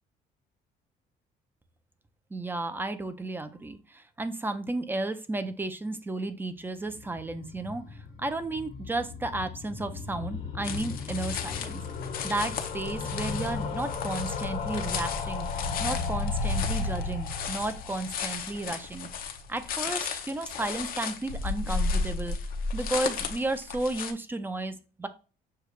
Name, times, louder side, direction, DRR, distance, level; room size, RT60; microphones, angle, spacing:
voice 1, 2.3-11.8 12.2-15.5 15.8-19.1 19.5-22.4 22.7-25.1, right 2 dB, 10° right, 10 dB, 0.6 m, -33 dB
sound 1, 6.8-19.9 20.1-20.2 20.4-20.5 20.7-20.8, left 4 dB, 80° left, 1.4 m, -35 dB
sound 2, 10.6-24.1, left 5 dB, 60° left, 0.7 m, -35 dB
6.6 x 2.4 x 3.1 m, 0.35 s
cardioid pair, 110°, 17 cm